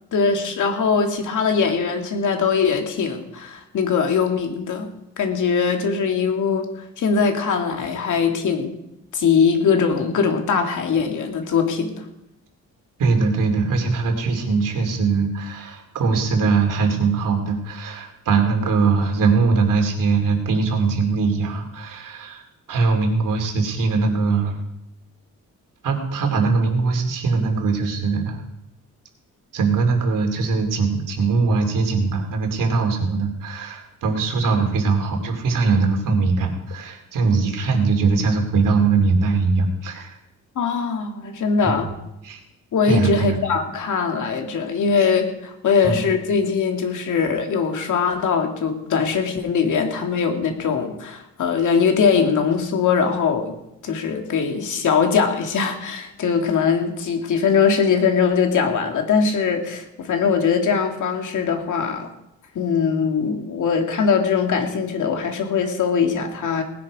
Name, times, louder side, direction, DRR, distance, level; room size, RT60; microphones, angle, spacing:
voice 1, 0.1-4.9 5.2-8.8 9.1-12.0 40.6-41.9 42.7-53.5 53.8-62.1 62.5-66.6, left 6 dB, 70° left, 4 dB, 2.3 m, -21 dB
voice 2, 13.0-22.4 22.7-24.5 25.8-28.4 29.5-40.2 41.6-41.7 42.2-42.4 42.9-43.4 45.8-46.0, right 4 dB, 85° right, 4 dB, 2.9 m, -21 dB
19.0 x 10.5 x 4.9 m, 0.86 s
cardioid pair, 140°, 32 cm